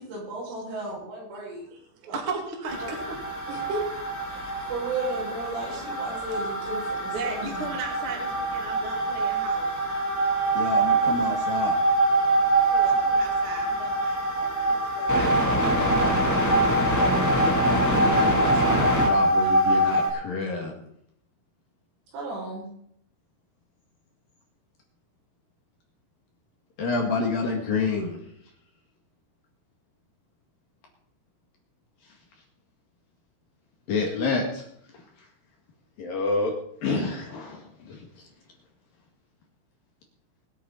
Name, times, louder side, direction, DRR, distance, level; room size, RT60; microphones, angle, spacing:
voice 1, 0.0-1.7 2.1-2.2 2.8-2.9 3.5-3.8 4.3-7.7 22.1-22.7, right 2 dB, 75° right, -4 dB, 8.7 m, -34 dB
voice 2, 1.3-3.1 4.5-4.6 7.0-9.7 12.4-16.0, right 4 dB, 35° right, 1 dB, 2.4 m, -37 dB
sound 1, 2.7-20.1, right 1 dB, 5° left, 2.0 m, -24 dB
voice 3, 10.5-11.7 17.9-20.7 26.8-28.2 33.9-34.6 36.0-36.5 36.8-38.0, left 4 dB, 55° left, 0 dB, 3.3 m, -28 dB
23.0 x 8.4 x 4.2 m, 0.69 s
omnidirectional pair, 5.5 m